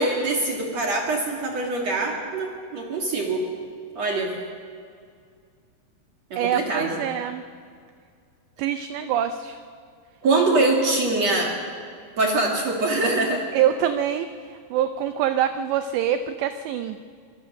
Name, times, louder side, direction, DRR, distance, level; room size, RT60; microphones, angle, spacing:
voice 1, 0.0-3.5 4.0-4.3 6.3-7.0 10.2-11.5 12.2-13.4, right 2 dB, 50° right, 0 dB, 2.1 m, -23 dB
voice 2, 6.4-7.4 8.6-9.6 10.9-11.0 13.5-17.0, right 10 dB, 85° right, 10 dB, 2.5 m, -25 dB
24.5 x 21.5 x 6.4 m, 2.2 s
omnidirectional pair, 5.8 m